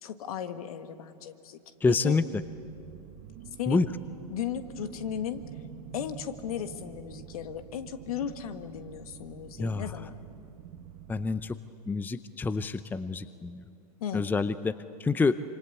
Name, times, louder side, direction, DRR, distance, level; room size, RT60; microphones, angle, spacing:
voice 1, 0.0-1.6 1.9-2.2 3.6-3.9 4.3-5.4 5.9-10.2 14.0-14.3, left 9 dB, 65° left, 9 dB, 1.7 m, -36 dB
voice 2, 1.8-2.2 3.7-3.9 9.6-9.9 11.1-11.6 11.9-13.6 14.1-15.3, left 4 dB, 10° left, 14 dB, 0.6 m, -27 dB
sound 1, 2.4-11.5, right 8 dB, 45° right, 1.5 m, -47 dB
26.5 x 25.0 x 8.4 m, 2.5 s
hypercardioid pair, 100°, 20 cm